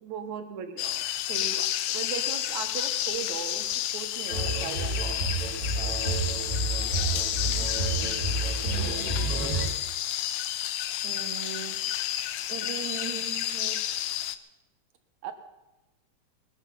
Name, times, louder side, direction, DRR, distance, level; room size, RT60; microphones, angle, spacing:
voice 1, 0.0-4.9 8.7-8.9 11.0-11.8 12.5-13.8 15.2-15.3, right 7 dB, 75° right, 7 dB, 2.7 m, -38 dB
sound 1, 0.8-14.4, left 12 dB, 75° left, 1.7 m, -31 dB
sound 2, 4.3-9.7, right 3 dB, 30° right, 2.6 m, -30 dB
voice 2, 5.7-6.4 6.8-7.1 8.2-9.6, left 1 dB, 15° left, -1 dB, 3.2 m, -43 dB
20.0 x 12.0 x 5.6 m, 1.0 s
omnidirectional pair, 3.4 m